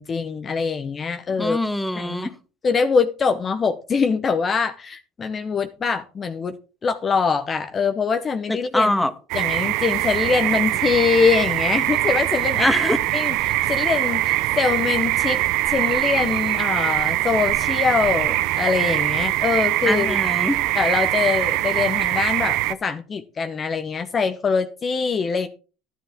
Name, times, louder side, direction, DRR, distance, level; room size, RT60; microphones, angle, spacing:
voice 1, 0.0-1.6 2.0-2.3 2.6-6.6 6.8-8.9 9.3-12.7 13.1-15.4 15.7-20.2 20.7-25.5, left 5 dB, 35° left, 0.8 m, -23 dB
voice 2, 1.3-2.4 8.5-9.1 12.6-13.0 19.9-20.6, left 1 dB, 5° left, 1.4 m, -23 dB
sound 1, 9.3-22.7, right 16 dB, 70° right, 0.6 m, -22 dB
12.0 x 10.5 x 3.6 m
supercardioid pair, 85°, 0 cm